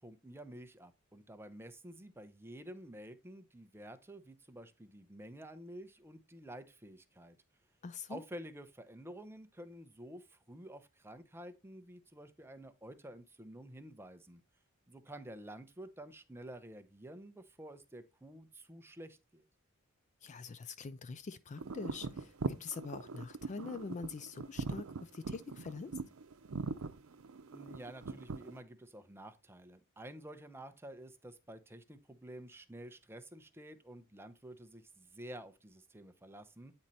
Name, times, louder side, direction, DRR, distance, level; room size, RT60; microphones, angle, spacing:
voice 1, 0.0-7.4 8.1-14.4 14.9-19.4 27.5-36.7, right 1 dB, 10° right, 0.6 m, -50 dB
voice 2, 7.8-8.2 20.2-25.9, left 4 dB, 35° left, 0.4 m, -44 dB
sound 1, 21.6-28.6, right 4 dB, 90° right, 0.6 m, -41 dB
8.7 x 4.3 x 3.9 m
head